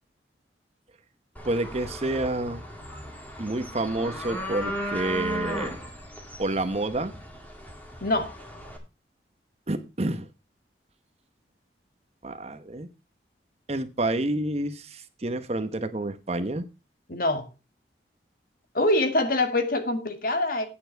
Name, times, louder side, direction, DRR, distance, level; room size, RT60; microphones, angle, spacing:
sound 1, 1.4-8.8, equal, 10° left, 2.1 m, -36 dB
voice 1, 1.4-2.6 3.4-5.8 6.4-7.1 9.7-10.3 12.2-12.9 13.7-16.6, right 2 dB, 35° right, 0.9 m, -29 dB
voice 2, 8.0-8.3 17.1-17.5 18.7-20.7, left 1 dB, 50° left, 1.8 m, -24 dB
9.3 x 8.8 x 4.4 m
head